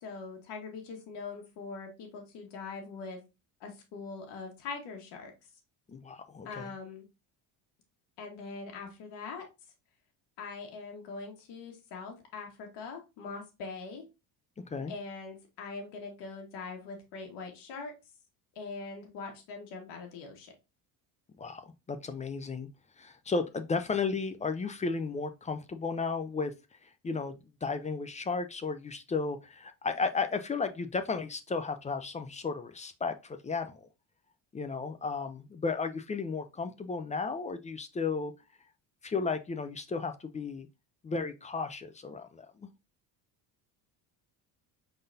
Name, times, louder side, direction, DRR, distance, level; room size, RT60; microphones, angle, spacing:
voice 1, 0.0-3.2 3.6-5.3 6.5-7.1 8.2-9.5 10.4-14.1 14.9-17.9 18.6-20.5, left 4 dB, 75° left, 1.8 m, -42 dB
voice 2, 5.9-6.7 14.6-14.9 21.4-21.6 21.9-22.7 23.0-26.5 26.8-27.3 27.6-33.8 34.5-38.3 39.0-40.7 41.0-42.7, left 4 dB, 20° left, 0.4 m, -34 dB
5.1 x 4.0 x 2.6 m
cardioid pair, 120°, 42 cm